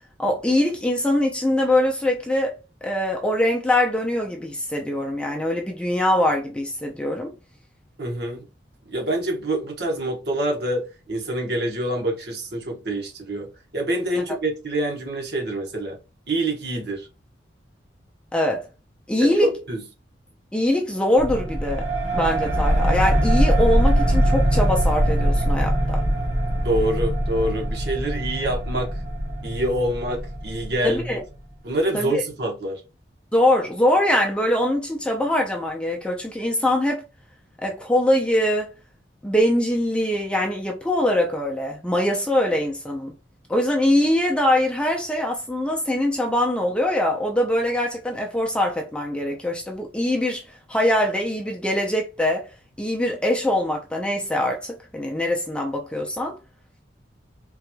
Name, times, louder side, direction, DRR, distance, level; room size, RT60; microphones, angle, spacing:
voice 1, 0.2-2.5 2.8-7.3 18.3-18.7 19.1-19.5 20.5-21.9 22.1-26.0 30.8-31.2 31.9-32.2 33.3-37.0 37.6-38.7 39.2-43.1 43.5-50.4 50.7-52.5 52.8-56.4, left 1 dB, 5° left, 0.5 m, -22 dB
voice 2, 8.0-8.4 8.9-16.0 16.3-17.1 19.2-19.8 26.6-29.0 29.4-31.2 31.6-32.8, right 1 dB, 60° right, 1.1 m, -26 dB
sound 1, 21.2-31.4, right 1 dB, 35° right, 1.1 m, -22 dB
3.8 x 2.9 x 2.2 m
head